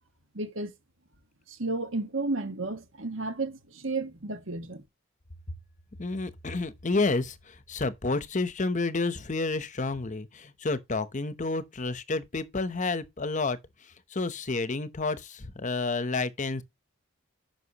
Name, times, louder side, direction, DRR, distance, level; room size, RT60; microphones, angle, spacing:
voice 1, 0.3-0.7 1.5-4.8, right 3 dB, 70° right, 1.6 m, -32 dB
voice 2, 6.0-16.6, left 3 dB, 35° left, 0.8 m, -30 dB
9.6 x 6.0 x 2.9 m
head